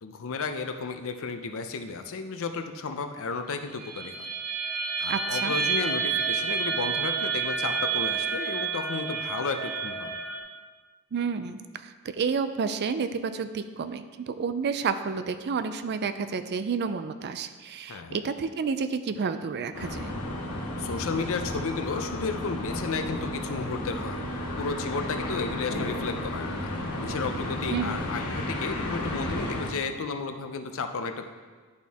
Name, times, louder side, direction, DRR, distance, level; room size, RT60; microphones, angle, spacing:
voice 1, 0.0-4.3 5.0-10.2 17.9-18.2 20.8-24.2 24.6-31.2, left 4 dB, 65° left, 7 dB, 0.6 m, -33 dB
sound 1, 3.8-10.4, right 6 dB, 75° right, 1.3 m, -29 dB
voice 2, 5.1-5.5 11.1-20.1 27.7-28.0, right 5 dB, 50° right, 10 dB, 0.4 m, -30 dB
sound 2, 19.7-29.7, left 1 dB, 90° left, 1.1 m, -33 dB
11.0 x 4.2 x 3.5 m, 1.5 s
head